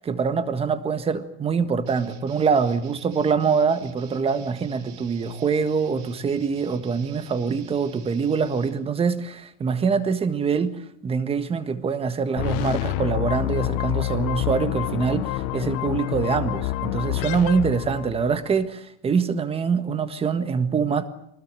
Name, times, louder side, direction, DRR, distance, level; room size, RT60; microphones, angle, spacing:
voice 1, 0.0-21.0, right 5 dB, 15° right, 1.6 m, -24 dB
sound 1, 1.9-8.7, right 9 dB, 50° right, 5.0 m, -48 dB
sound 2, 12.4-18.5, left 15 dB, 40° left, 1.1 m, -27 dB
24.5 x 20.0 x 9.0 m
supercardioid pair, 160°, 36 cm